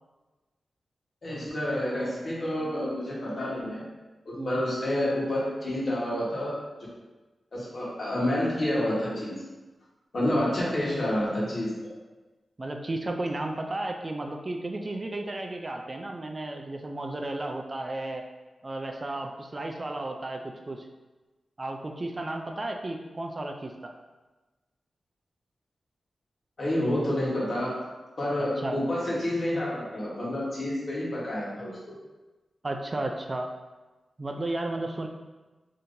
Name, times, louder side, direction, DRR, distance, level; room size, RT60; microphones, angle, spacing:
voice 1, 1.2-3.8 4.2-6.5 7.5-9.4 10.1-11.9 26.6-27.8 28.2-31.9, left 1 dB, 60° left, -6 dB, 1.2 m, -29 dB
voice 2, 12.6-18.2 18.6-20.9 21.6-23.9 28.6-28.8 29.5-29.6 32.6-33.5 34.2-35.1, right 2 dB, 35° right, 3 dB, 0.3 m, -33 dB
3.5 x 2.8 x 2.6 m, 1.2 s
cardioid pair, 65°, 0 cm